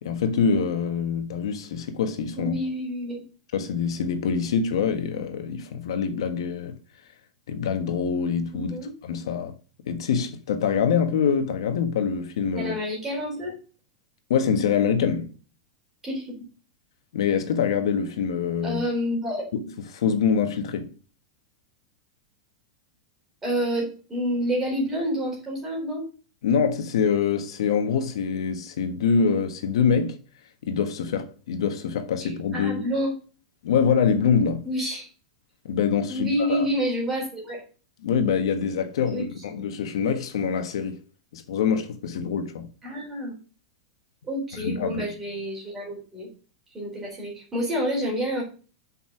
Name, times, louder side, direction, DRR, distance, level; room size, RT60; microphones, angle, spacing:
voice 1, 0.0-2.6 3.5-6.7 7.5-9.5 9.9-12.7 14.3-15.3 17.1-18.8 19.5-20.9 26.4-30.2 30.6-32.8 33.6-34.7 35.6-36.7 38.0-41.0 41.3-42.7 44.5-45.0, left 6 dB, 70° left, 1.4 m, -25 dB
voice 2, 2.3-3.2 8.5-8.9 12.5-13.5 16.0-16.5 18.6-19.4 23.4-26.0 32.2-33.1 34.6-35.1 36.1-37.6 39.1-39.2 42.8-43.3 44.2-46.3 46.7-48.4, equal, 10° right, 4.1 m, -28 dB
7.1 x 5.5 x 6.0 m
supercardioid pair, 175°, 3 cm